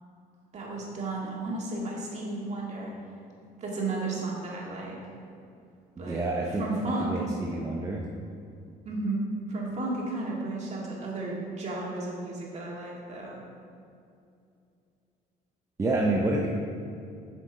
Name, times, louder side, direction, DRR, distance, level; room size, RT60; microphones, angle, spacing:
voice 1, 0.5-2.9 3.6-5.0 6.0-6.2 6.6-7.1 8.9-13.4, right 2 dB, 40° right, -3 dB, 2.0 m, -33 dB
voice 2, 6.0-6.6 7.0-8.1 15.8-16.5, right 2 dB, 20° right, -2 dB, 0.6 m, -28 dB
7.7 x 6.5 x 4.0 m, 2.5 s
cardioid pair, 110°, 17 cm